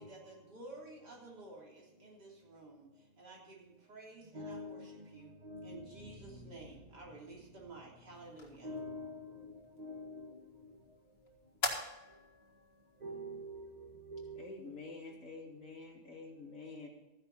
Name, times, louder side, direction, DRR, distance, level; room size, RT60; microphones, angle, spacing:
voice 1, 0.0-5.3 5.6-8.7, right 2 dB, 75° right, 3.9 m, -53 dB
voice 2, 4.3-6.1 8.6-10.7 13.0-14.5, equal, 30° right, 1.2 m, -46 dB
sound 1, 5.5-11.4, equal, 55° right, 4.1 m, -59 dB
sound 2, 8.1-15.1, left 3 dB, 70° left, 2.4 m, -46 dB
voice 3, 14.3-16.9, left 3 dB, 50° left, 2.8 m, -48 dB
14.5 x 10.0 x 4.1 m
omnidirectional pair, 1.8 m